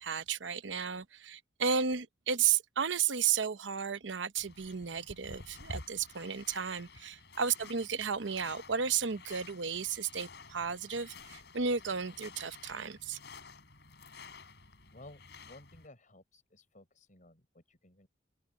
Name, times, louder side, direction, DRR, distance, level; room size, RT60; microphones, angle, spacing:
voice 1, 0.0-13.2, right 6 dB, 80° right, 0.9 m, -33 dB
sound 1, 4.4-15.9, left 3 dB, 65° left, 6.3 m, -51 dB
voice 2, 14.9-18.1, left 2 dB, 45° left, 5.5 m, -56 dB
open air
head